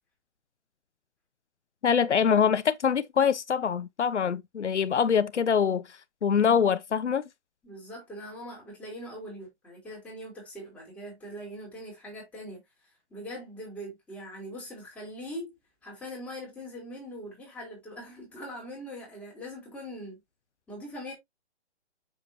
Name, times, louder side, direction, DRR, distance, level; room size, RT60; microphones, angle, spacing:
voice 1, 1.8-5.8 6.2-7.2, left 7 dB, 90° left, 1.0 m, -24 dB
voice 2, 7.6-15.6 15.8-20.2 20.7-21.1, equal, 5° left, 5.1 m, -42 dB
7.5 x 7.1 x 2.8 m
hypercardioid pair, 165°, 34 cm